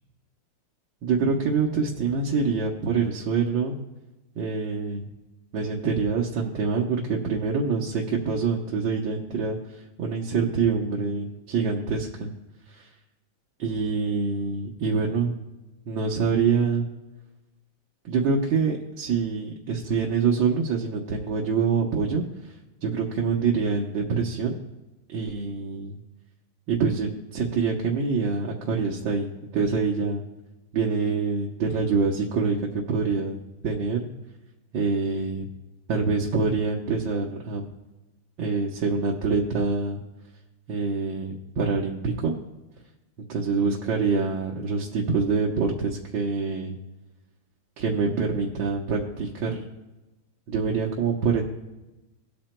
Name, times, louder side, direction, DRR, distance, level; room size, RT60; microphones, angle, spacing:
voice 1, 1.0-3.8 4.4-5.0 5.5-12.3 12.7-12.9 13.6-15.4 15.9-16.9 18.1-22.3 22.8-24.6 25.1-26.0 26.7-30.2 30.7-33.4 33.6-34.1 34.7-35.5 35.9-37.7 38.4-40.0 40.7-42.3 43.3-46.7 47.8-49.6 50.5-51.4, right 5 dB, 70° right, -2 dB, 1.7 m, -25 dB
18.5 x 8.9 x 2.2 m, 1.1 s
omnidirectional pair, 2.2 m